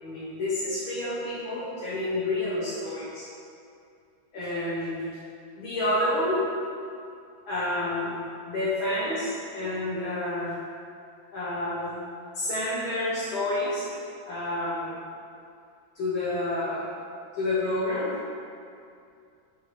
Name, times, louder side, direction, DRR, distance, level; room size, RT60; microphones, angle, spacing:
voice 1, 0.0-3.3 4.3-5.0 5.6-6.4 7.5-8.2 8.5-10.6 11.3-12.0 12.4-13.9 14.3-15.0 16.0-16.9 17.4-18.3, left 1 dB, 80° left, -10 dB, 1.8 m, -29 dB
7.3 x 4.0 x 3.2 m, 2.4 s
omnidirectional pair, 2.1 m